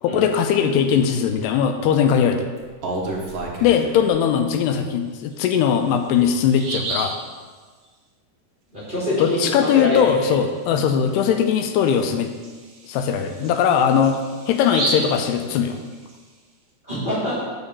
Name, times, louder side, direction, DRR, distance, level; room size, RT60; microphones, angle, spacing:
voice 1, 0.0-2.5 3.6-7.2 9.2-12.3 12.9-14.2 14.5-15.8, left 8 dB, 85° left, 6 dB, 2.7 m, -20 dB
Bird vocalization bird call bird song, 2.6-4.1 5.5-5.6 6.1-6.2 6.5-7.2 10.7-10.8 11.2-11.3 11.9-16.1, right 2 dB, 75° right, 1.3 m, -30 dB
voice 2, 8.7-10.3 16.8-17.5, left 1 dB, 15° right, -9 dB, 2.4 m, -25 dB
7.2 x 6.4 x 6.7 m, 1.4 s
omnidirectional pair, 4.7 m